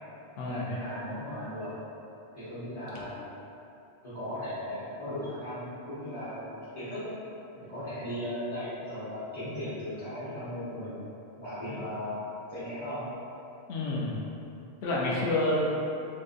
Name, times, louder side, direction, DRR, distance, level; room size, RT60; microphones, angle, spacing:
voice 1, 0.4-1.7 2.3-3.3 4.0-6.5 6.7-7.2 7.6-11.0 11.4-12.2 12.5-13.0, equal, 35° left, -16 dB, 1.0 m, -37 dB
voice 2, 13.7-14.2 14.8-15.6, left 2 dB, 80° left, -6 dB, 0.8 m, -29 dB
3.9 x 2.5 x 2.4 m, 2.8 s
omnidirectional pair, 1.1 m